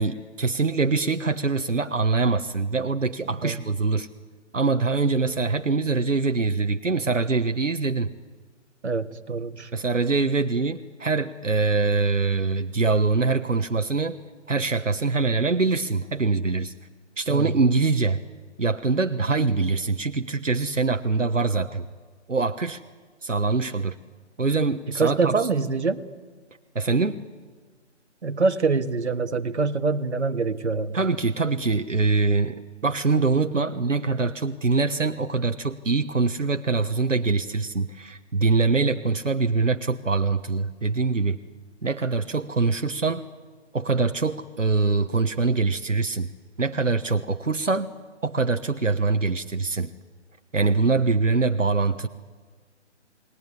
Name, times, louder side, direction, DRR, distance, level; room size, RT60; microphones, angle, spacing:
voice 1, 0.0-4.1 4.5-8.1 9.7-14.2 14.5-16.7 17.2-18.2 18.6-21.9 22.3-22.8 23.2-24.0 24.4-25.3 26.7-27.2 30.9-41.4 41.8-43.3 43.7-46.3 46.6-47.9 48.2-49.9 50.5-52.1, right 4 dB, 85° right, 8 dB, 1.3 m, -24 dB
voice 2, 8.8-9.7 17.3-17.5 24.9-26.0 28.2-31.0 38.8-39.0, right 4 dB, 65° right, 8 dB, 1.7 m, -25 dB
29.5 x 20.0 x 9.8 m, 1.5 s
figure-of-eight pair, 150°, 37 cm